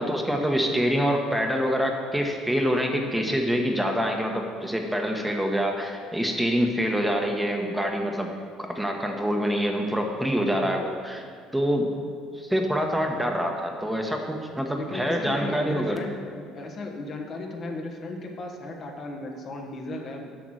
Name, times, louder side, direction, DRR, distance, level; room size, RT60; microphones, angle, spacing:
voice 1, 0.0-8.3 8.6-11.2 11.5-11.9 12.4-16.0, equal, 5° right, 2 dB, 1.1 m, -26 dB
voice 2, 14.7-20.3, left 2 dB, 50° left, 2 dB, 1.3 m, -36 dB
8.1 x 5.9 x 6.3 m, 2.2 s
supercardioid pair, 85°, 0 cm